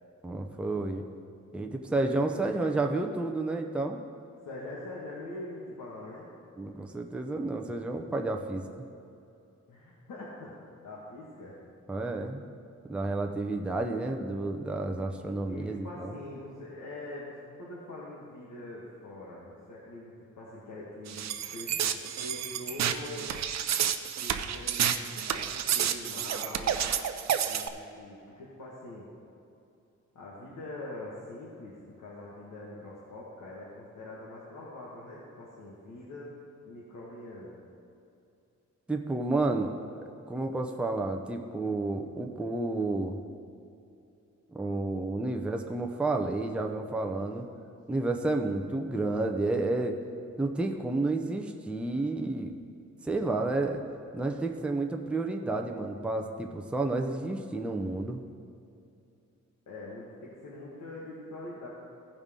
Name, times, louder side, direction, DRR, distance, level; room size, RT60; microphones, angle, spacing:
voice 1, 0.2-1.1 1.5-4.0 6.6-8.9 11.9-12.4 12.9-16.1 38.9-39.7 40.3-43.2 44.5-47.5 47.9-50.0 50.4-52.5 53.0-53.8 54.1-58.2, right 2 dB, 5° right, 2 dB, 0.5 m, -31 dB
voice 2, 2.3-2.7 4.4-6.3 9.7-10.5 10.8-11.5 15.5-23.3 24.2-26.8 27.5-29.1 30.1-36.3 36.6-37.6 59.7-61.7, left 2 dB, 75° left, -6 dB, 1.6 m, -43 dB
sound 1, 21.1-27.7, right 9 dB, 60° right, 0.5 m, -30 dB
16.0 x 5.3 x 3.7 m, 2.7 s
wide cardioid pair, 125°, 30 cm